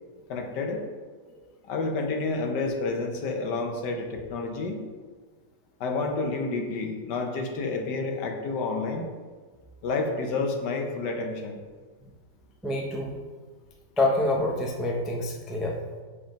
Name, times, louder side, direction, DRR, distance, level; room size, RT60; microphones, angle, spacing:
voice 1, 0.3-0.8 1.7-4.8 5.8-9.1 9.8-11.6, left 3 dB, 70° left, 3 dB, 1.5 m, -29 dB
voice 2, 12.6-13.2 14.0-15.7, left 2 dB, ahead, -1 dB, 0.3 m, -27 dB
7.4 x 4.3 x 5.1 m, 1.5 s
omnidirectional pair, 1.9 m